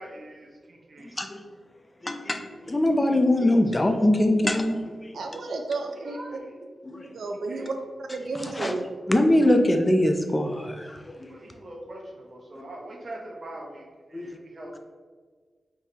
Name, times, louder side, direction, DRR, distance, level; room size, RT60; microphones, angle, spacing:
voice 1, 0.0-1.2 5.9-6.6 7.5-7.7 11.3-14.8, right 1 dB, 40° right, -1 dB, 0.9 m, -42 dB
voice 2, 1.0-1.4 2.0-5.1 6.8-7.1 8.3-8.8 9.1-11.3 12.5-12.6 14.1-14.3, left 1 dB, 15° left, 5 dB, 0.4 m, -23 dB
voice 3, 5.1-6.2 7.0-7.7 8.0-8.8, right 3 dB, 90° right, 4 dB, 0.5 m, -32 dB
4.5 x 3.6 x 2.8 m, 1.5 s
wide cardioid pair, 150°, 0 cm